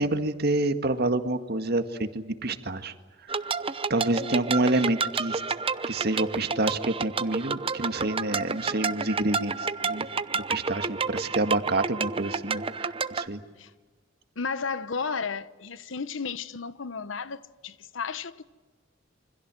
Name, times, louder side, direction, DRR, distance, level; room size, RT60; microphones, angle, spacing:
voice 1, 0.0-2.9 3.9-5.4 5.9-10.1 10.3-13.4, right 2 dB, 55° right, 1.8 m, -28 dB
sound 1, 3.3-13.3, right 5 dB, 30° right, 0.8 m, -30 dB
voice 2, 14.4-18.4, left 5 dB, 85° left, 1.0 m, -33 dB
27.5 x 25.5 x 7.7 m
head